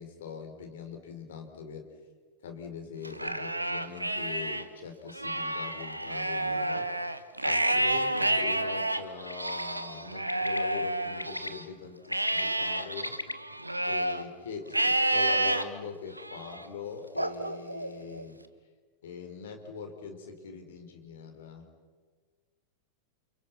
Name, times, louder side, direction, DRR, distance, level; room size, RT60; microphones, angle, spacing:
voice 1, 0.0-1.8 2.4-13.1 13.8-18.4 19.0-21.7, left 5 dB, 60° left, 5 dB, 4.8 m, -42 dB
Livestock farm animals working animals, 3.0-4.6 5.1-11.6 12.1-14.2 14.7-15.6 16.2-16.6 17.2-18.2, right 1 dB, 85° right, 1.3 m, -30 dB
Bird, 9.3-9.6 10.3-10.6 11.2-11.5 12.0-13.3, left 2 dB, 85° left, 1.1 m, -36 dB
29.5 x 29.5 x 6.2 m, 1.5 s
figure-of-eight pair, 90°, 0 cm